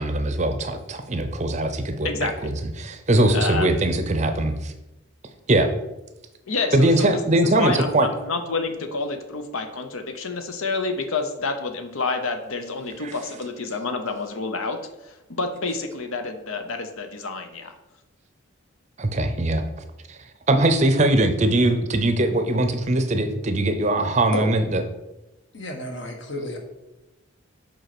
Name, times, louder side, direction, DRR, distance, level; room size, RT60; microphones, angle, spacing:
voice 1, 0.0-2.1 2.4-4.7 5.5-5.7 6.7-8.1 13.0-13.1 19.0-19.6 20.1-24.8, right 1 dB, 35° right, 8 dB, 0.6 m, -21 dB
voice 2, 2.0-2.4 3.3-3.7 6.5-17.7, left 3 dB, 80° left, 7 dB, 0.8 m, -29 dB
voice 3, 25.5-26.6, left 1 dB, 60° left, 3 dB, 1.2 m, -31 dB
5.5 x 4.3 x 5.9 m, 0.99 s
head